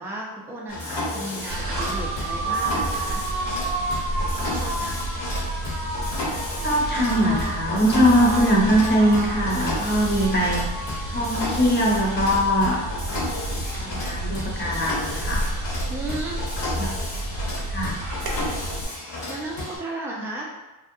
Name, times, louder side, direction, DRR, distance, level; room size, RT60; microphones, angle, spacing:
voice 1, 0.0-3.2 4.4-5.1 15.9-16.5 19.3-20.5, right 2 dB, 5° right, -3 dB, 0.3 m, -34 dB
Mechanisms, 0.7-19.8, left 2 dB, 65° left, 0.9 m, -32 dB
sound 1, 1.5-18.8, right 2 dB, 50° right, 0.6 m, -30 dB
voice 2, 6.6-10.7 11.1-12.8 13.8-15.5 16.8-16.9 17.4-18.0, equal, 25° left, -3 dB, 0.7 m, -21 dB
2.6 x 2.2 x 2.6 m, 1.1 s
cardioid pair, 100°, 46 cm